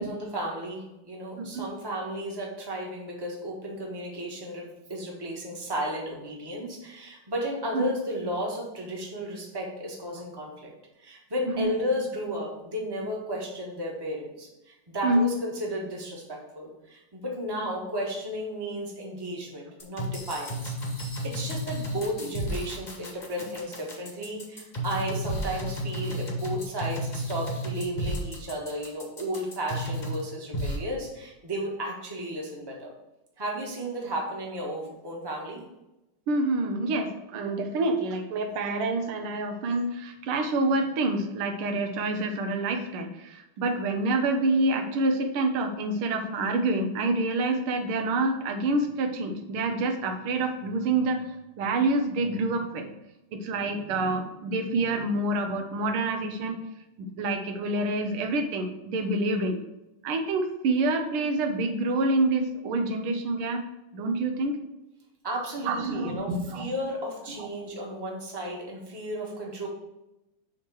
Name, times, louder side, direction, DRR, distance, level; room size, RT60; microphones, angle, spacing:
voice 1, 0.0-10.7 11.0-20.7 21.2-32.9 33.4-35.6 65.2-69.7, equal, 15° right, -1 dB, 1.0 m, -34 dB
sound 1, 19.8-30.2 30.5-30.8, equal, 25° left, 1.1 m, -32 dB
voice 2, 36.3-51.3 51.6-52.9 53.3-56.6 57.0-59.6 60.0-63.6 63.9-64.6 65.6-66.7 67.4-67.5, right 2 dB, 90° right, 5 dB, 1.7 m, -27 dB
7.0 x 3.1 x 6.1 m, 0.93 s
omnidirectional pair, 2.3 m